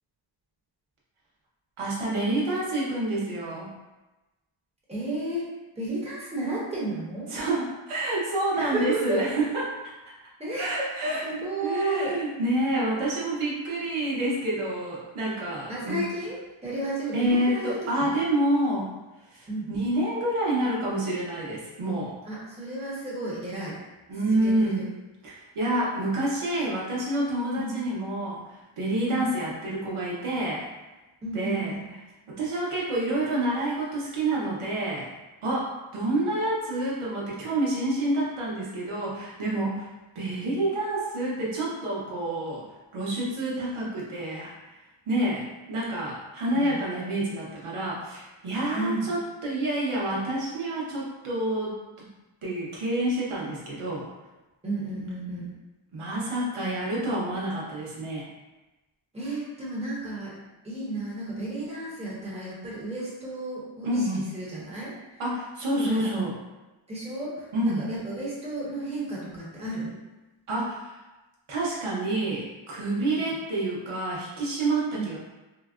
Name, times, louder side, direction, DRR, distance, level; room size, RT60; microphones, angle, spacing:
voice 1, 1.8-3.7 7.3-9.6 10.6-16.0 17.1-18.9 19.3-22.1 24.1-24.8 25.2-30.7 31.3-31.7 32.3-35.1 35.4-39.9 40.1-42.6 42.9-44.5 45.1-51.8 52.4-54.1 55.9-58.3 63.8-64.2 65.2-66.3 67.5-67.8 70.5-70.9 71.5-75.2, right 1 dB, 85° right, -5 dB, 0.9 m, -28 dB
voice 2, 4.9-5.5 5.8-7.3 8.6-9.2 10.4-10.9 11.2-12.1 15.7-16.4 16.6-18.1 19.5-19.7 22.2-23.8 24.3-24.8 27.5-27.8 29.1-29.3 31.2-31.9 36.2-36.3 46.5-46.8 48.7-49.1 54.6-55.5 59.1-60.4 60.6-65.2 65.8-66.1 66.9-70.0 73.3-73.4 74.9-75.1, right 1 dB, 15° right, -7 dB, 1.0 m, -33 dB
3.9 x 2.1 x 2.4 m, 1.1 s
wide cardioid pair, 105°, 49 cm